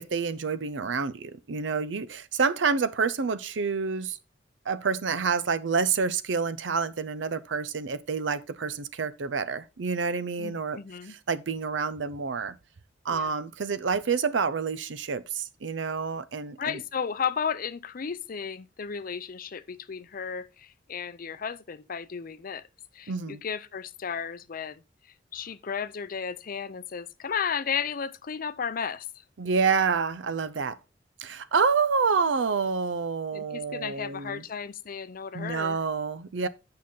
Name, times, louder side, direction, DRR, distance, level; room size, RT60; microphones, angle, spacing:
voice 1, 0.0-4.2 4.7-10.8 11.0-12.5 13.0-16.8 23.1-23.4 29.4-30.8 31.2-34.4 35.3-36.5, right 5 dB, 80° right, 0.6 m, -28 dB
voice 2, 10.4-11.1 13.1-13.3 16.6-22.6 22.9-24.8 25.3-29.1 33.3-35.8, left 7 dB, 50° left, 0.5 m, -34 dB
8.7 x 5.7 x 3.7 m
head